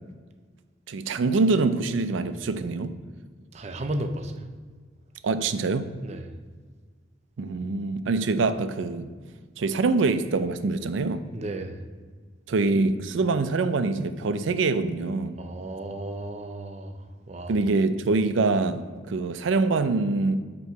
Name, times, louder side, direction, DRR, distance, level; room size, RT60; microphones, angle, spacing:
voice 1, 0.9-2.9 5.2-5.9 7.4-9.1 9.6-11.2 12.5-15.4 17.5-20.4, right 3 dB, 85° right, 0.4 m, -24 dB
voice 2, 3.5-4.4 6.0-6.3 11.3-11.8 15.3-17.6, right 1 dB, 35° right, 0.5 m, -34 dB
8.1 x 3.1 x 4.6 m
head